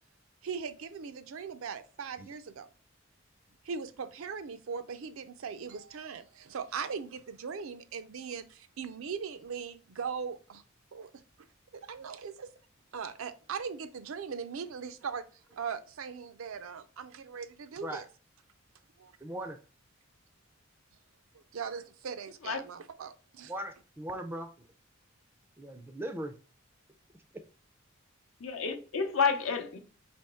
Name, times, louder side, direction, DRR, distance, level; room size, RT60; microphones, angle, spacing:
voice 1, 0.4-2.7 3.6-10.6 10.9-11.5 11.7-12.5 12.9-18.1 19.0-19.1 21.3-23.5, right 6 dB, 80° right, 0.5 m, -40 dB
voice 2, 19.2-19.6 23.5-24.5 25.6-26.3, right 1 dB, 10° right, 0.3 m, -38 dB
voice 3, 28.4-29.8, left 5 dB, 80° left, 0.7 m, -29 dB
3.5 x 3.0 x 4.1 m
head